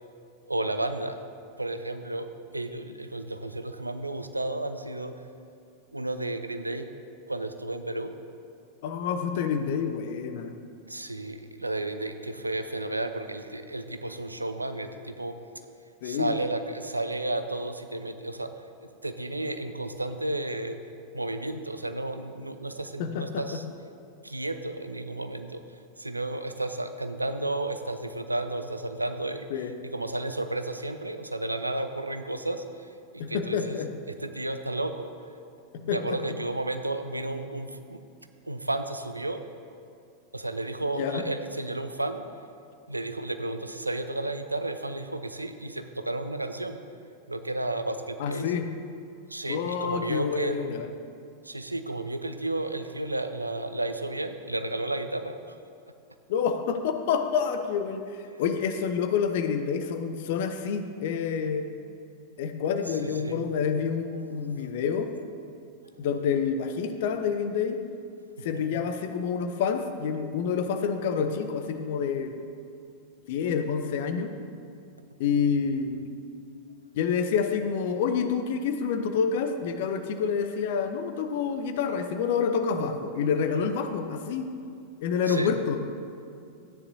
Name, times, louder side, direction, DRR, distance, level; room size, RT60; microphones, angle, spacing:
voice 1, 0.5-1.2 1.6-5.2 5.9-6.9 7.3-8.1 10.9-15.4 16.0-18.5 19.0-20.8 21.1-23.6 24.2-25.6 26.0-29.5 29.9-32.6 33.1-33.8 34.2-35.1 35.7-38.0 38.5-39.4 40.3-42.2 42.9-46.8 47.3-48.5 49.3-50.7 51.4-55.4 63.0-63.4 64.6-64.7 68.5-68.6 85.3-85.5, right 2 dB, 85° right, 9 dB, 0.5 m, -32 dB
voice 2, 8.8-10.6 16.0-16.4 23.0-23.6 29.5-29.7 33.2-33.9 35.9-36.4 41.0-41.3 48.2-48.7 49.5-50.9 56.3-58.0 58.4-61.7 62.4-65.1 66.0-67.8 68.4-72.3 73.3-74.3 75.2-76.1 76.9-84.5 85.0-85.8, left 6 dB, 50° left, 7 dB, 0.7 m, -28 dB
13.5 x 9.7 x 2.7 m, 2.4 s
figure-of-eight pair, 90°, 0 cm